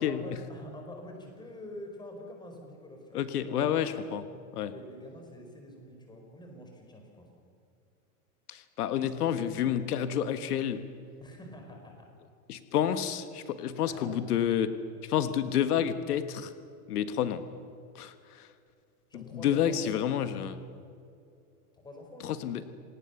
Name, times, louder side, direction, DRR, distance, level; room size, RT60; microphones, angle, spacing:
voice 1, 0.0-3.8 4.6-7.3 11.2-12.1 13.8-14.3 19.1-20.2 21.7-22.4, left 1 dB, 10° left, 2 dB, 4.6 m, -46 dB
voice 2, 3.1-4.2 4.5-4.7 8.5-10.9 12.5-14.7 15.0-16.5 16.9-17.4 17.9-18.5 19.1-20.5 22.2-22.6, left 9 dB, 85° left, 10 dB, 1.5 m, -29 dB
28.0 x 18.5 x 7.0 m, 2.5 s
supercardioid pair, 150°, 45 cm